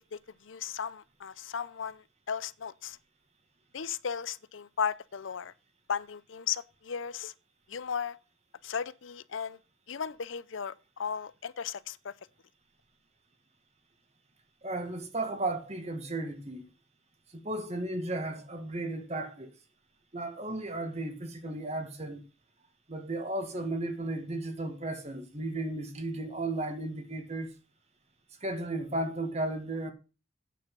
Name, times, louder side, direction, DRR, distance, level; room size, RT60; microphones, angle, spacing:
voice 1, 0.1-3.0 3.7-5.5 5.9-7.3 7.7-8.2 8.6-9.6 9.9-12.1, left 7 dB, 75° left, 0.6 m, -36 dB
voice 2, 14.6-16.7 17.3-19.5 20.1-22.2 22.9-27.5 28.4-29.9, right 2 dB, 35° right, 1.9 m, -34 dB
9.2 x 7.1 x 5.4 m
head